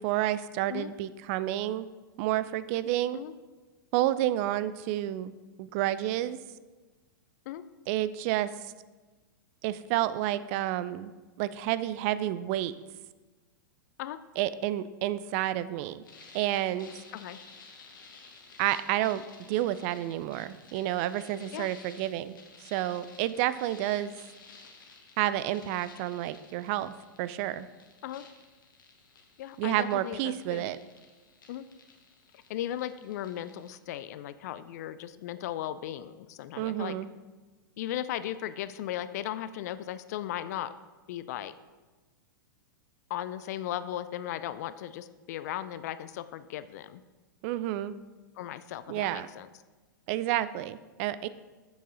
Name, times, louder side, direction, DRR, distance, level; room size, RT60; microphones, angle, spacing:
voice 1, 0.0-1.8 2.2-3.2 3.9-6.4 7.9-8.5 9.6-11.1 11.4-12.7 14.4-16.0 16.3-17.0 18.6-19.2 19.5-22.4 22.7-24.1 25.2-27.7 29.6-30.8 36.6-37.1 47.4-47.9 48.9-49.3 50.1-51.3, right 14 dB, 40° right, 15 dB, 0.4 m, -30 dB
sound 1, 16.0-33.7, left 4 dB, 70° left, 1.3 m, -54 dB
voice 2, 29.4-30.7 31.5-31.7 32.5-37.0 37.8-40.7 41.1-41.5 43.1-47.0 48.4-49.5, left 12 dB, 50° left, 14 dB, 0.4 m, -37 dB
7.2 x 7.0 x 3.9 m, 1.3 s
figure-of-eight pair, 100°, 11 cm